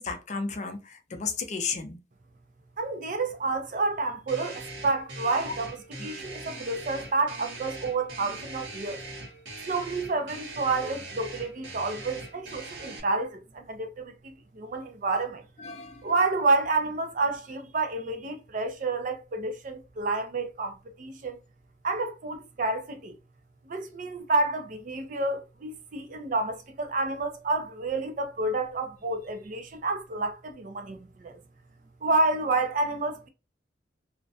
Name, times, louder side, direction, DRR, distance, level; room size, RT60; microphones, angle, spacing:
voice 1, 0.0-2.0 5.4-5.5 6.0-6.1 15.6-16.1, left 5 dB, 40° left, 0.5 m, -33 dB
voice 2, 2.8-5.8 6.0-9.0 9.7-15.4 16.0-21.4 21.8-23.1 23.7-31.4 32.0-33.3, right 3 dB, 45° right, 0.5 m, -29 dB
sound 1, 4.3-13.0, right 2 dB, 85° right, 1.0 m, -41 dB
2.5 x 2.1 x 2.6 m
head